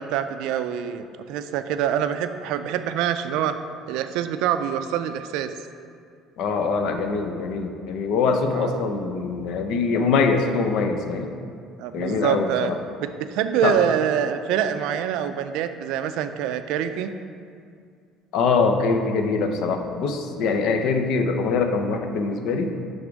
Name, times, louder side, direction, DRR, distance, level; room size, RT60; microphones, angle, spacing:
voice 1, 0.0-3.6 3.9-5.5 8.5-8.8 11.8-12.7 13.0-17.1, right 9 dB, 75° right, 10 dB, 0.3 m, -25 dB
voice 2, 6.4-11.3 11.9-12.8 13.6-13.8 18.3-22.7, left 4 dB, 55° left, 6 dB, 0.5 m, -23 dB
6.8 x 3.5 x 5.1 m, 2.3 s
cardioid pair, 165°, 0 cm